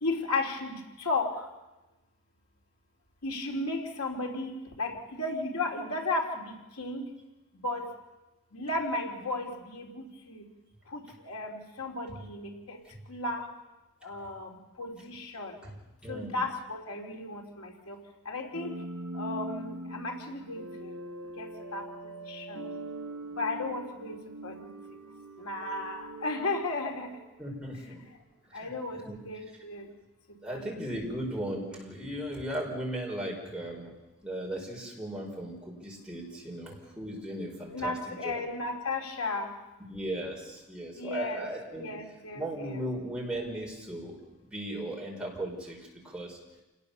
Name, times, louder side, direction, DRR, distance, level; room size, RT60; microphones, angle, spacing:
voice 1, 0.0-1.5 3.2-7.1 7.6-7.9 8.5-10.4 10.9-12.8 13.1-13.5 14.0-15.6 16.1-18.0 18.2-18.8 19.1-20.9 21.4-21.9 22.3-22.6 23.3-24.7 25.4-27.2 28.5-29.9 30.5-30.7 37.7-39.5 41.0-41.5 41.8-42.8, left 2 dB, 75° left, 2 dB, 3.0 m, -34 dB
voice 2, 16.0-16.4 27.4-28.0 28.5-29.2 30.4-33.9 34.2-38.4 39.9-41.9 42.3-44.2 44.5-45.8 46.0-46.4, right 1 dB, 5° right, -2 dB, 4.9 m, -37 dB
sound 1, 18.5-27.5, right 1 dB, 80° right, 4.3 m, -42 dB
28.5 x 18.5 x 7.0 m, 1.0 s
head